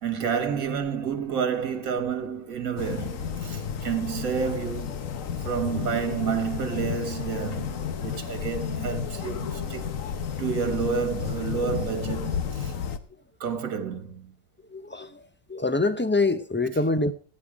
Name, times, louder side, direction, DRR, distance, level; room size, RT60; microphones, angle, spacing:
voice 1, 0.0-4.9 5.4-10.0 10.4-12.8 13.4-14.3, right 6 dB, 85° right, 1.8 m, -30 dB
sound 1, 2.8-13.0, left 7 dB, 75° left, 1.3 m, -32 dB
voice 2, 14.7-15.2 15.5-17.1, left 2 dB, 15° left, 0.3 m, -25 dB
15.0 x 9.5 x 4.7 m
omnidirectional pair, 1.4 m